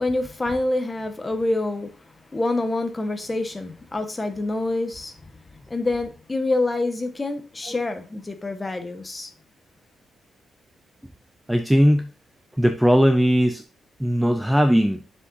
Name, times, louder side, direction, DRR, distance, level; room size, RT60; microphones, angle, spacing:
voice 1, 0.0-5.2 5.7-9.3, left 2 dB, 15° left, 1.2 m, -26 dB
voice 2, 11.5-12.1 12.6-13.6 14.0-15.0, equal, 5° right, 0.5 m, -18 dB
7.0 x 7.0 x 2.6 m
wide cardioid pair, 165°, 0 cm